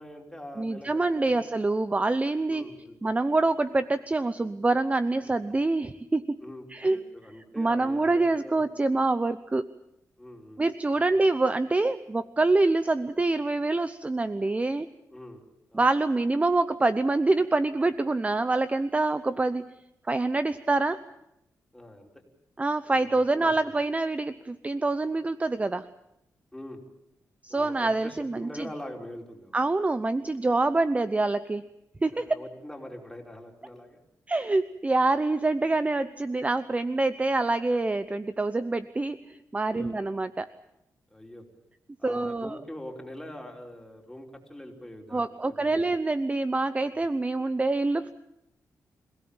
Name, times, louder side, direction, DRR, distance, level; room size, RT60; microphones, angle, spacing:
voice 1, 0.0-1.5 2.5-2.9 5.2-5.3 6.4-8.5 10.2-10.6 10.9-11.3 15.1-15.4 15.7-15.9 21.7-22.1 22.9-23.7 26.5-26.8 27.5-29.5 32.1-34.0 39.7-40.0 41.1-41.4 42.0-45.9, left 1 dB, 5° left, 0 dB, 4.9 m, -43 dB
voice 2, 0.6-2.6 3.0-6.3 6.7-7.0 7.6-9.7 10.6-14.9 15.7-19.7 20.1-21.0 22.6-25.9 27.4-28.7 29.5-31.6 32.0-32.3 34.3-40.5 42.0-42.6 45.1-48.1, right 2 dB, 20° right, 13 dB, 0.8 m, -26 dB
26.0 x 17.5 x 8.9 m, 0.81 s
cardioid pair, 85°, 6 cm